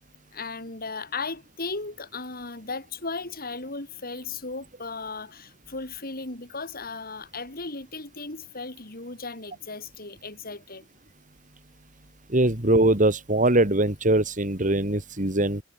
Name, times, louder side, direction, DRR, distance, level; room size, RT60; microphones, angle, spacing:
voice 1, 0.3-10.9, left 3 dB, 45° left, 5.3 m, -36 dB
voice 2, 12.3-15.6, right 1 dB, 40° right, 2.7 m, -22 dB
head